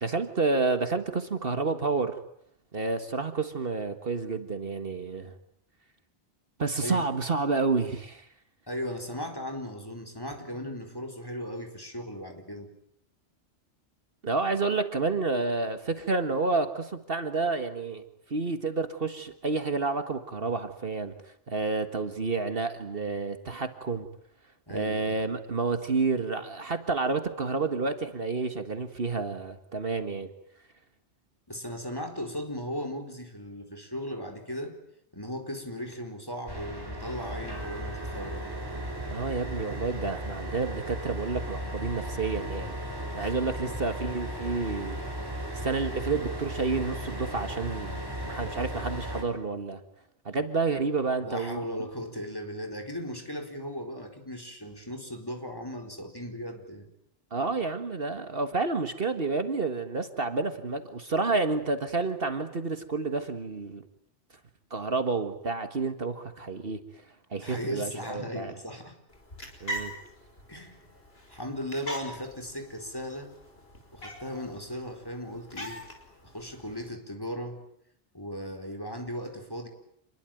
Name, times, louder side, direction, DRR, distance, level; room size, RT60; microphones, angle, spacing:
voice 1, 0.0-2.2 2.7-5.3 6.6-8.3 14.2-18.0 18.3-21.1 21.5-24.1 24.7-30.3 39.1-42.8 43.1-45.0 45.6-49.8 50.3-51.6 57.3-63.8 64.7-66.8 67.3-68.5 69.6-69.9, right 3 dB, 55° right, 9 dB, 1.9 m, -29 dB
voice 2, 8.7-12.7 24.7-25.2 31.5-34.8 35.1-38.5 43.2-43.8 51.2-56.9 67.4-69.0 69.6-69.7 70.5-70.8 71.3-73.3 73.9-75.8 76.2-77.6 78.1-79.7, equal, 20° left, 5 dB, 4.4 m, -37 dB
sound 1, 36.5-49.2, equal, 20° right, 5.9 m, -36 dB
sound 2, 69.1-76.9, equal, 60° left, 5.6 m, -42 dB
28.0 x 21.5 x 9.2 m, 0.74 s
omnidirectional pair, 1.2 m